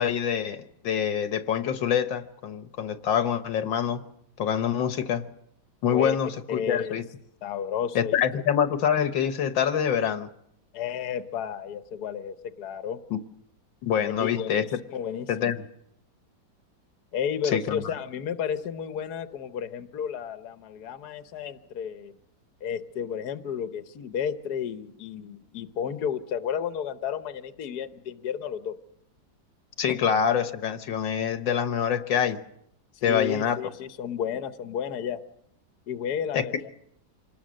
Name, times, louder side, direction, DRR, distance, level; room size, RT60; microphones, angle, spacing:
voice 1, 0.0-4.0 4.4-5.2 5.8-7.0 7.9-10.3 13.1-13.2 13.8-14.6 15.3-15.6 17.5-17.8 29.8-32.4 33.0-33.6 36.3-36.4, left 8 dB, 80° left, 10 dB, 1.8 m, -25 dB
voice 2, 6.5-7.0 7.4-8.2 10.7-13.0 14.0-15.5 17.1-22.1 22.6-28.7 29.9-30.0 32.9-35.2 35.9-36.7, left 8 dB, 60° left, 10 dB, 1.5 m, -32 dB
26.0 x 19.5 x 6.4 m, 0.75 s
omnidirectional pair, 2.0 m